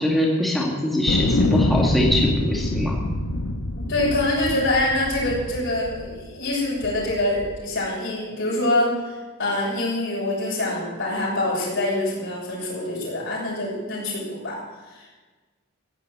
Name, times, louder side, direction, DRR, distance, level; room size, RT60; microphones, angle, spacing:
voice 1, 0.0-3.0, left 1 dB, ahead, -3 dB, 2.3 m, -23 dB
sound 1, 1.1-6.3 6.8-7.6, left 1 dB, 85° left, 1.4 m, -25 dB
voice 2, 3.8-14.6 14.9-15.1, left 1 dB, 60° left, -6 dB, 6.9 m, -25 dB
16.0 x 9.8 x 9.0 m, 1.3 s
head